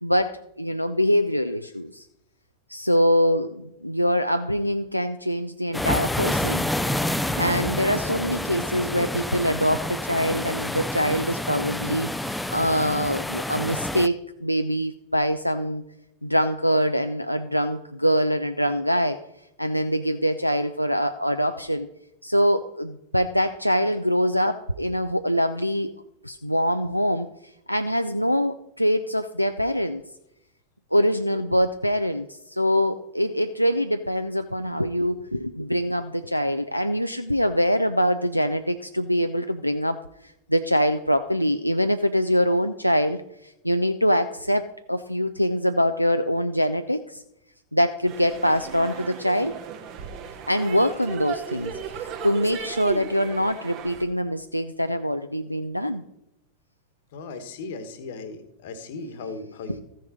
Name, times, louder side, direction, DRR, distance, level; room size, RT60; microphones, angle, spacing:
voice 1, 0.0-2.1 2.7-6.7 7.4-15.8 16.2-19.2 19.6-21.9 22.2-25.9 26.2-27.3 27.7-30.0 30.9-40.0 40.5-47.2 47.7-49.5 50.5-56.0 59.7-59.8, equal, 90° left, 8 dB, 0.3 m, -24 dB
sound 1, 5.7-14.1, left 1 dB, 5° left, 0.4 m, -28 dB
sound 2, 48.0-54.0, right 6 dB, 40° right, 1.0 m, -36 dB
voice 2, 57.1-59.8, left 3 dB, 55° left, 10 dB, 1.2 m, -37 dB
14.0 x 6.4 x 4.0 m, 0.85 s
figure-of-eight pair, 90°, 0 cm